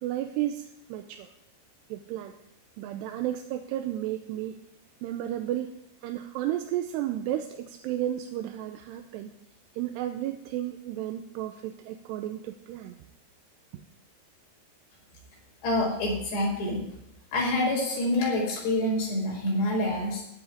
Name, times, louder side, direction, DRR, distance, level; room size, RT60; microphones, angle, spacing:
voice 1, 0.0-1.3 1.9-2.3 2.8-4.6 5.0-5.7 6.0-9.3 9.8-13.0, right 12 dB, 80° right, 6 dB, 2.8 m, -33 dB
voice 2, 15.6-16.8 17.3-20.2, left 1 dB, 75° left, -3 dB, 7.4 m, -27 dB
15.5 x 6.1 x 9.8 m, 0.81 s
omnidirectional pair, 5.0 m